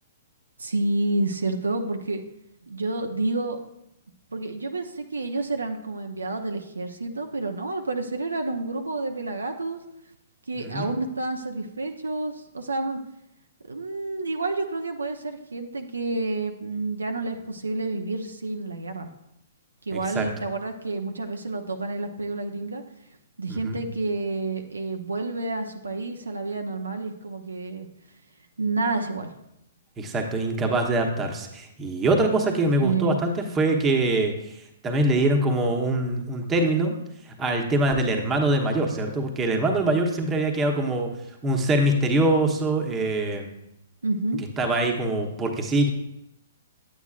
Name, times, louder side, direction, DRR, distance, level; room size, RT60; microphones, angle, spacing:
voice 1, 0.6-2.2 2.6-3.6 4.3-9.8 10.5-13.0 13.7-19.1 19.9-22.8 23.4-27.9 28.6-29.3 32.8-33.2 44.0-44.4, right 2 dB, 90° right, 5 dB, 0.7 m, -29 dB
voice 2, 10.6-10.9 19.9-20.3 23.5-23.8 30.0-34.5 34.8-37.0 37.3-41.1 41.4-43.5 44.6-45.9, right 2 dB, 20° right, 2 dB, 1.1 m, -24 dB
8.8 x 8.4 x 2.5 m, 0.81 s
hypercardioid pair, 125°, 0 cm